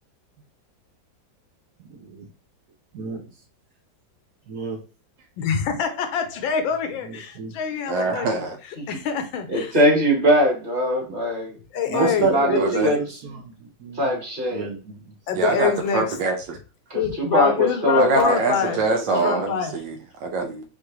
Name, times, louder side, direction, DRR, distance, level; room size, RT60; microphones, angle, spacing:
voice 1, 1.8-2.3 2.9-3.3 4.5-4.8 7.4-7.5 11.0-11.2 11.9-14.1 14.5-15.0 15.3-15.4, right 5 dB, 55° right, 1.3 m, -29 dB
voice 2, 5.4-8.4 8.9-9.8 11.7-13.0 15.3-16.0 16.9-18.8 19.1-19.8, left 7 dB, 80° left, 1.5 m, -25 dB
voice 3, 7.9-8.6 12.6-12.9 15.3-16.6 17.9-20.6, right 3 dB, 70° right, 1.4 m, -24 dB
voice 4, 9.5-11.5 11.9-13.0 14.0-14.7 16.9-18.4 18.6-19.4, equal, 25° right, 1.7 m, -22 dB
5.9 x 2.4 x 3.1 m
omnidirectional pair, 2.1 m